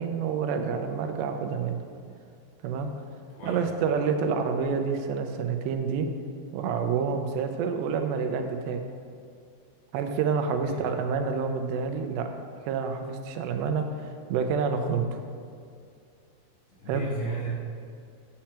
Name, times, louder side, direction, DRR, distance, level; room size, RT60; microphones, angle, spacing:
voice 1, 0.0-1.8 2.6-2.9 3.4-6.1 6.5-8.8 9.9-12.3 12.6-15.2 16.9-17.0, right 5 dB, 85° right, 6 dB, 2.9 m, -28 dB
voice 2, 16.7-17.5, right 2 dB, 85° left, -8 dB, 5.0 m, -34 dB
10.0 x 7.6 x 4.3 m, 2.4 s
omnidirectional pair, 4.9 m